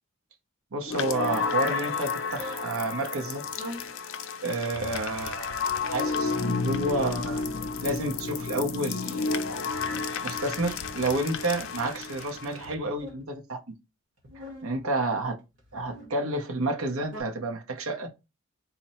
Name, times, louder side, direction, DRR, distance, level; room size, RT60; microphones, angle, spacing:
voice 1, 0.7-3.4 4.4-7.4 7.8-9.3 10.2-13.6 14.6-15.4 15.7-18.1, right 2 dB, 75° right, 0.8 m, -30 dB
sound 1, 0.9-12.7, left 5 dB, 65° left, 0.5 m, -31 dB
sound 2, 2.3-2.7 3.4-3.9 4.7-5.2 5.8-6.5 7.4-8.6 9.1-10.1 10.9-11.9 12.6-13.3 14.2-14.8 15.5-16.2 16.8-17.2, left 1 dB, 55° right, 1.2 m, -45 dB
4.2 x 2.0 x 4.2 m
head